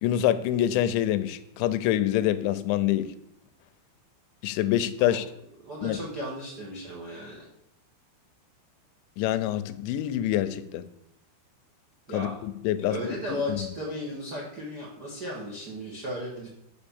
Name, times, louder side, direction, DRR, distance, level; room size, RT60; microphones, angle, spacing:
voice 1, 0.0-3.1 4.4-5.3 5.8-6.0 9.2-10.8 12.1-13.0 13.3-13.7, left 12 dB, 85° left, 12 dB, 2.8 m, -26 dB
voice 2, 5.6-7.4 12.1-12.3 12.8-16.5, equal, 75° right, -4 dB, 0.9 m, -35 dB
6.6 x 5.1 x 7.0 m, 0.78 s
omnidirectional pair, 5.2 m